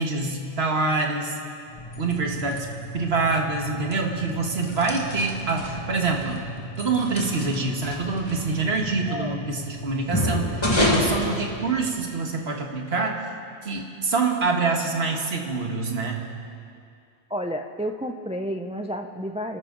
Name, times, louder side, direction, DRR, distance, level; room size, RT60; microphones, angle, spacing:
voice 1, 0.0-1.4 2.0-2.7 2.9-6.4 6.8-13.2 13.6-16.2, right 3 dB, 60° right, 2 dB, 1.8 m, -26 dB
sound 1, 1.7-12.2, left 1 dB, 25° left, 1.8 m, -30 dB
voice 2, 9.1-9.4 17.3-19.6, equal, 10° right, 5 dB, 0.3 m, -31 dB
27.0 x 12.5 x 3.9 m, 2.3 s
omnidirectional pair, 1.2 m